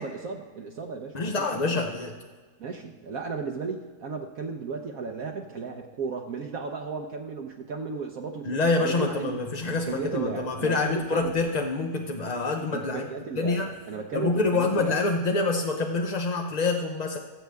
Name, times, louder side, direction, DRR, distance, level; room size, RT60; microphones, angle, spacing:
voice 1, 0.0-1.9 2.6-9.3 9.7-11.3 12.7-15.0, right 5 dB, 65° right, 2 dB, 1.2 m, -35 dB
voice 2, 1.1-2.1 8.4-13.1 13.3-13.7 14.1-17.2, left 3 dB, 45° left, 2 dB, 0.5 m, -26 dB
sound 1, 9.4-11.6, equal, 85° left, 4.4 m, -49 dB
19.0 x 7.8 x 3.5 m, 1.5 s
omnidirectional pair, 1.7 m